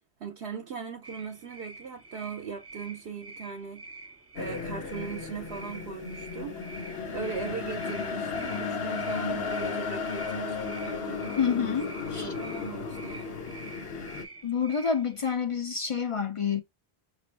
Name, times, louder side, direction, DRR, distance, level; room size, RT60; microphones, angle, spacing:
voice 1, 0.2-3.9 4.3-6.6 7.1-11.8 12.2-13.5, right 6 dB, 70° right, 0.9 m, -39 dB
sound 1, 1.0-15.3, right 3 dB, 20° right, 0.4 m, -48 dB
sound 2, 4.4-14.3, left 5 dB, 70° left, 1.1 m, -34 dB
voice 2, 11.4-12.3 14.4-16.6, left 6 dB, 45° left, 0.5 m, -28 dB
5.2 x 2.6 x 3.2 m
omnidirectional pair, 1.1 m